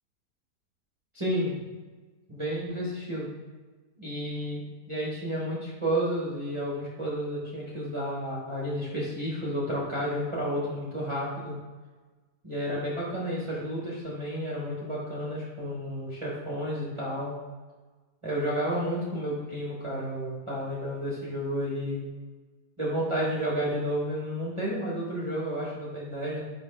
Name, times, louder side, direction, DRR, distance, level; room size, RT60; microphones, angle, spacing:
voice 1, 1.1-1.5 2.3-3.3 4.0-11.5 12.4-17.3 18.2-22.0 22.8-26.4, equal, 20° right, -7 dB, 1.2 m, -31 dB
6.1 x 3.1 x 5.4 m, 1.3 s
omnidirectional pair, 1.8 m